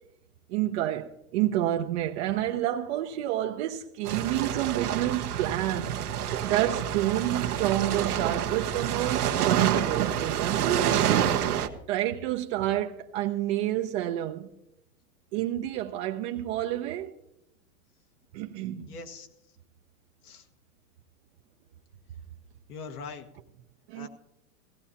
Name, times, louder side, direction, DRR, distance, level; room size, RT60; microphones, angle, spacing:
voice 1, 0.5-6.0 6.4-11.4 11.9-14.5 15.3-17.1 18.3-18.9 23.9-24.1, right 13 dB, 45° right, 0.8 m, -29 dB
sound 1, 4.1-11.7, right 10 dB, 90° right, 1.3 m, -28 dB
voice 2, 18.9-19.3 20.2-20.5 22.7-23.3 23.9-24.1, left 4 dB, 85° left, 1.8 m, -41 dB
17.0 x 16.0 x 2.9 m
hypercardioid pair, 130°, 44 cm